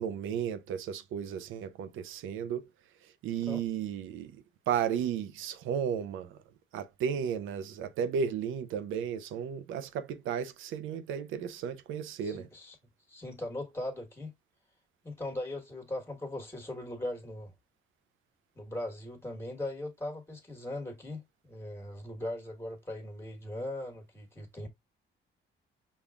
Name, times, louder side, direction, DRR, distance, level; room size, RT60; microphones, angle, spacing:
voice 1, 0.0-2.6 3.0-6.4 6.7-12.5, right 8 dB, 90° right, 0.5 m, -34 dB
voice 2, 12.2-12.7 13.1-14.3 15.0-17.5 18.5-24.7, left 1 dB, 10° left, 1.4 m, -39 dB
5.3 x 2.3 x 2.3 m
cardioid pair, 90°, 20 cm